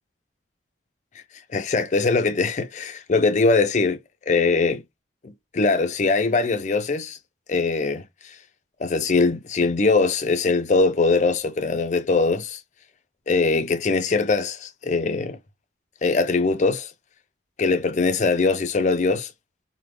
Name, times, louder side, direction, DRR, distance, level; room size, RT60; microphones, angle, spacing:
voice 1, 1.5-4.0 4.3-4.8 5.2-7.2 7.5-8.0 8.8-12.6 13.3-15.4 16.0-16.9 17.6-19.3, left 3 dB, 40° left, 0.4 m, -21 dB
3.4 x 2.1 x 3.2 m
head